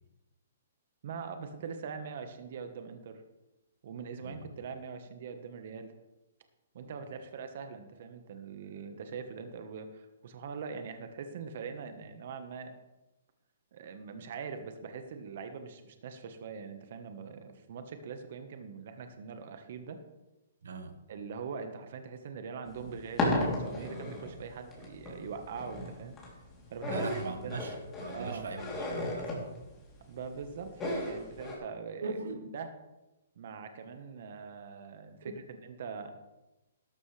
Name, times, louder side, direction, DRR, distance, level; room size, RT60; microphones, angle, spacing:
voice 1, 1.0-3.2 3.8-5.9 6.7-12.7 13.7-20.0 21.1-26.2 26.7-27.6 28.1-28.5 30.1-32.2 32.5-32.7 33.4-35.3 35.6-36.1, right 5 dB, 55° right, 7 dB, 1.3 m, -42 dB
voice 2, 20.6-21.0 26.8-29.5 32.0-32.6 35.2-35.3, right 3 dB, 80° right, 8 dB, 1.3 m, -40 dB
sound 1, 22.7-31.6, left 1 dB, 15° left, 3.2 m, -35 dB
13.0 x 12.0 x 3.4 m, 1.0 s
hypercardioid pair, 155°, 0 cm